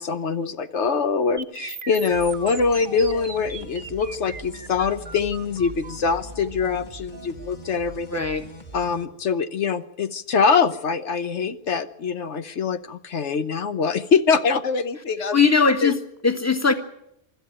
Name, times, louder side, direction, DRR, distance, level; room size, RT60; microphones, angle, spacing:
voice 1, 0.0-8.1 8.7-15.4 15.8-15.9, left 5 dB, 80° left, 10 dB, 1.3 m, -23 dB
sound 1, 1.4-9.3, right 5 dB, 50° right, 1.2 m, -40 dB
sound 2, 2.1-9.1, right 1 dB, 40° left, 2.0 m, -42 dB
voice 2, 8.1-8.5 15.3-16.7, left 5 dB, 15° left, 7 dB, 1.7 m, -20 dB
24.5 x 13.0 x 8.9 m, 0.80 s
omnidirectional pair, 1.2 m